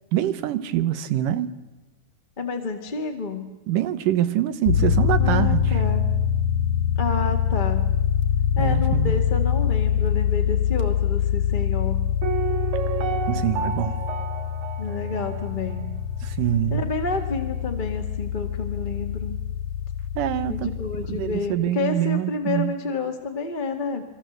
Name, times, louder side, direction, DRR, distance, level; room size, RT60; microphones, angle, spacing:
voice 1, 0.1-1.5 3.7-5.8 8.6-9.1 13.3-14.0 16.2-16.9 20.2-20.7 21.1-22.8, right 12 dB, 80° right, 2.8 m, -25 dB
voice 2, 2.4-3.5 5.2-6.0 7.0-7.9 8.5-12.1 14.8-15.9 16.7-19.4 20.5-24.0, left 4 dB, 20° left, 1.2 m, -29 dB
sound 1, 4.7-21.4, left 8 dB, 55° left, 2.8 m, -24 dB
Piano, 12.2-16.0 16.3-16.4, right 7 dB, 65° right, 2.7 m, -31 dB
29.0 x 22.5 x 7.9 m
omnidirectional pair, 3.7 m